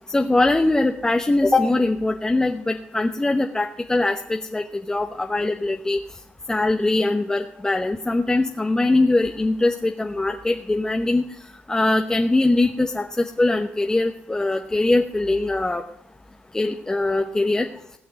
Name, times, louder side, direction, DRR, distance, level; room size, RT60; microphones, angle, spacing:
voice 1, 0.1-6.0 6.5-11.2 11.7-15.8 16.5-17.7, left 2 dB, 15° left, 4 dB, 0.9 m, -22 dB
16.5 x 5.9 x 9.5 m, 0.72 s
cardioid pair, 90°, 4 cm